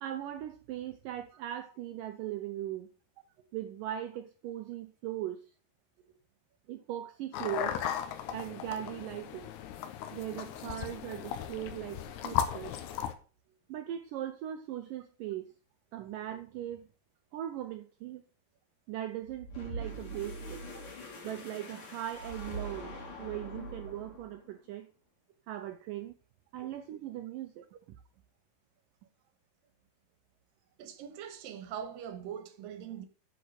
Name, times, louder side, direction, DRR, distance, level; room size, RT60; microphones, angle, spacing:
voice 1, 0.0-2.9 3.5-5.5 6.7-7.8 8.3-9.5 10.1-12.7 13.7-15.5 15.9-16.9 17.3-18.2 18.9-20.6 21.2-24.9 25.5-26.2 26.5-27.7, right 12 dB, 85° right, 1.9 m, -39 dB
sound 1, 7.3-13.1, left 9 dB, 75° left, 2.9 m, -36 dB
sound 2, 19.2-24.5, right 1 dB, 55° left, 4.1 m, -43 dB
voice 2, 30.8-33.1, right 9 dB, 70° right, 2.6 m, -42 dB
9.0 x 6.4 x 6.4 m
omnidirectional pair, 4.7 m